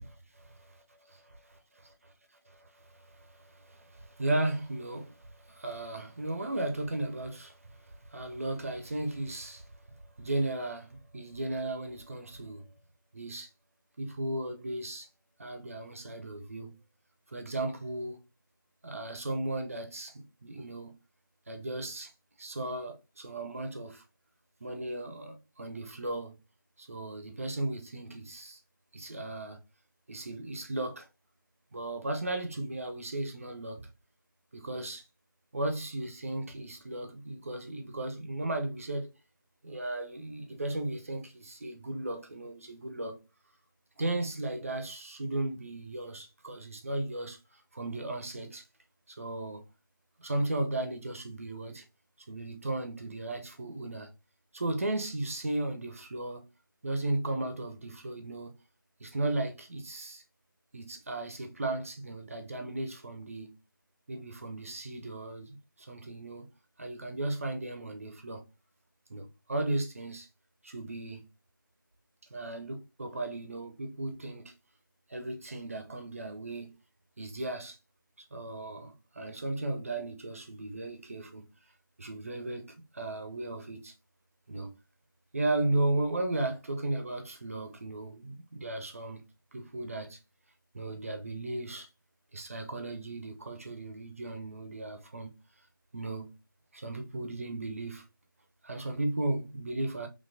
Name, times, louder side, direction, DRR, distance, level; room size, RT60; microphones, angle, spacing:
voice 1, 2.5-9.7 10.2-12.6 13.1-13.5 14.0-15.1 15.4-16.7 17.3-18.2 18.8-20.9 21.5-22.1 22.4-24.0 24.6-26.4 26.8-28.6 28.9-29.6 30.1-31.1 31.7-33.9 34.5-35.0 35.5-39.1 39.6-43.2 44.0-48.6 49.1-49.6 50.2-51.8 52.3-54.1 54.5-56.5 56.8-58.5 59.0-60.2 60.7-63.6 64.1-66.5 66.8-68.5 69.1-70.3 70.6-71.3 72.3-74.5 75.1-76.7 77.2-77.8 78.2-81.4 82.0-83.9 84.5-84.7 85.3-89.3 89.5-90.2 90.7-91.9 92.3-95.3 95.9-96.3 96.7-98.0 98.6-100.1, right 2 dB, 40° right, 0.5 m, -35 dB
4.2 x 2.9 x 2.6 m
figure-of-eight pair, 165°, 12 cm